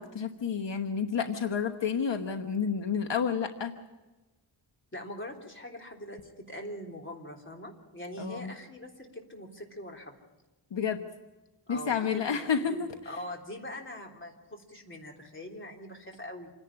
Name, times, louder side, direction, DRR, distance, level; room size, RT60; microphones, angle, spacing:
voice 1, 0.0-3.7 8.2-8.5 10.7-11.0 11.7-13.1, left 6 dB, 70° left, 6 dB, 1.2 m, -30 dB
voice 2, 4.9-10.1 11.7-16.5, left 1 dB, 25° left, 1 dB, 3.4 m, -43 dB
27.5 x 11.0 x 9.8 m, 1.1 s
wide cardioid pair, 125°, 45 cm